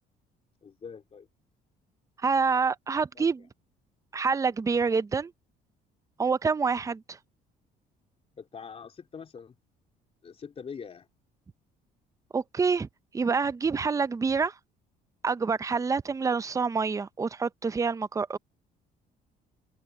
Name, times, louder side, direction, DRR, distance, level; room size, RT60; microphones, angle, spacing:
voice 1, 0.6-1.3 3.2-3.3 8.3-9.6 10.2-11.1, left 6 dB, 35° left, 3.4 m, -43 dB
voice 2, 2.2-3.4 4.1-5.3 6.2-7.2 12.3-12.9 13.1-14.5 15.2-18.4, right 5 dB, 20° right, 0.5 m, -27 dB
cardioid pair, 110°, 17 cm